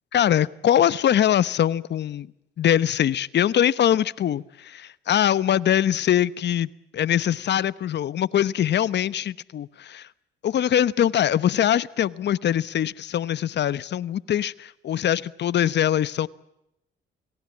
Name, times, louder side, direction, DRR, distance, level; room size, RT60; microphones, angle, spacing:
voice 1, 0.1-2.3 2.6-10.1 10.4-16.3, left 10 dB, 60° left, 18 dB, 1.0 m, -22 dB
29.0 x 19.0 x 8.6 m, 0.85 s
cardioid pair, 90°, 20 cm